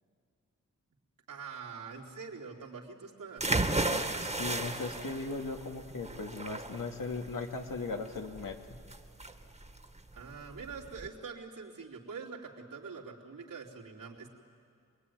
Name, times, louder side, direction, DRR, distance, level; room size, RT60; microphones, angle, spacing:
voice 1, 1.3-3.4 10.1-14.3, right 5 dB, 85° right, -3 dB, 3.4 m, -44 dB
sound 1, 3.4-11.1, right 2 dB, 20° right, 1.8 m, -34 dB
voice 2, 4.2-8.8, left 3 dB, 85° left, 2 dB, 2.3 m, -38 dB
26.5 x 21.5 x 9.6 m, 2.2 s
wide cardioid pair, 85°, 32 cm